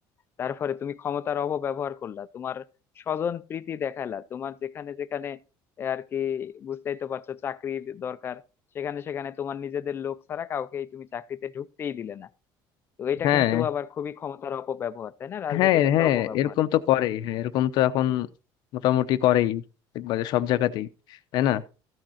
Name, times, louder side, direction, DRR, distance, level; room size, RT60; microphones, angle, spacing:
voice 1, 0.4-2.6 3.0-5.4 5.8-8.4 8.7-12.3 13.0-16.5, left 8 dB, 25° left, 0.5 m, -32 dB
voice 2, 13.2-13.7 15.5-18.3 18.7-19.6 19.9-20.9 21.3-21.6, left 13 dB, 55° left, 0.7 m, -23 dB
14.0 x 6.3 x 4.2 m
cardioid pair, 170°, 9 cm